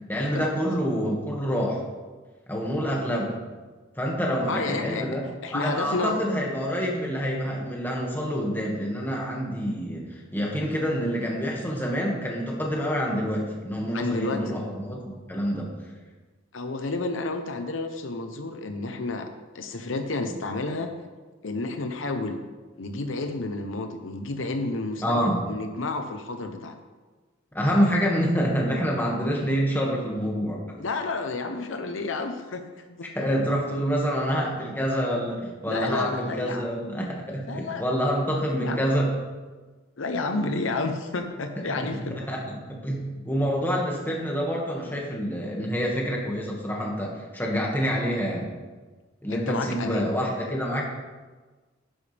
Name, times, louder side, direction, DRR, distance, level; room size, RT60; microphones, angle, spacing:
voice 1, 0.1-1.8 2.5-3.4 4.0-5.2 5.5-10.1 10.3-15.7 25.0-25.4 27.5-30.6 33.2-39.1 41.6-41.9 42.2-42.4 42.8-48.5 49.2-50.8, equal, 10° left, -2 dB, 1.9 m, -27 dB
voice 2, 4.5-5.1 5.4-6.2 13.9-14.6 16.5-20.9 21.4-22.4 22.8-26.8 30.8-33.1 35.7-36.7 37.5-37.8 38.5-38.8 40.0-42.2 49.3-50.1, left 3 dB, 75° left, 6 dB, 0.8 m, -30 dB
11.5 x 10.5 x 3.4 m, 1.3 s
head